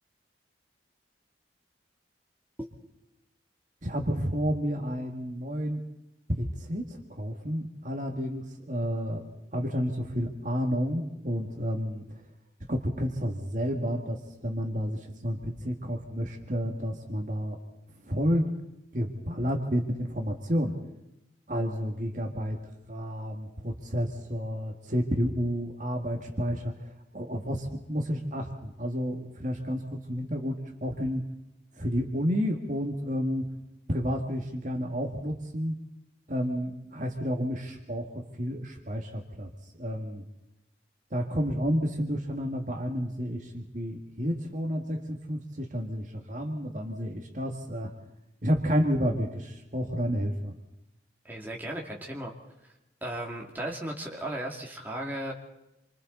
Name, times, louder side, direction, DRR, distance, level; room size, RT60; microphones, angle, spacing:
voice 1, 3.8-5.8 6.3-9.2 9.5-12.3 12.7-17.6 18.0-18.5 18.9-20.7 21.5-22.6 22.9-31.3 31.7-33.5 33.9-35.7 36.3-40.2 41.1-47.9 48.4-50.5, equal, 40° right, 2 dB, 2.1 m, -30 dB
voice 2, 51.2-52.3 53.0-55.3, right 1 dB, 10° right, -1 dB, 2.6 m, -35 dB
27.5 x 25.5 x 4.1 m, 0.90 s
head